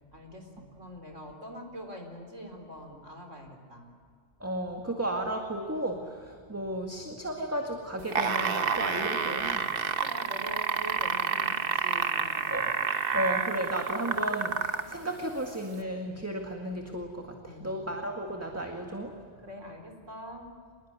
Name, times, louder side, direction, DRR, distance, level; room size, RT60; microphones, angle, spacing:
voice 1, 0.1-3.9 10.0-12.7 17.4-17.8 19.4-20.5, equal, 75° right, 3 dB, 4.5 m, -44 dB
voice 2, 4.4-9.7 12.5-12.7 13.1-19.1, right 1 dB, 10° right, 2 dB, 1.9 m, -34 dB
sound 1, 8.0-14.9 15.8-15.9, right 5 dB, 50° right, 1.3 m, -29 dB
26.0 x 21.0 x 9.5 m, 2.1 s
omnidirectional pair, 1.3 m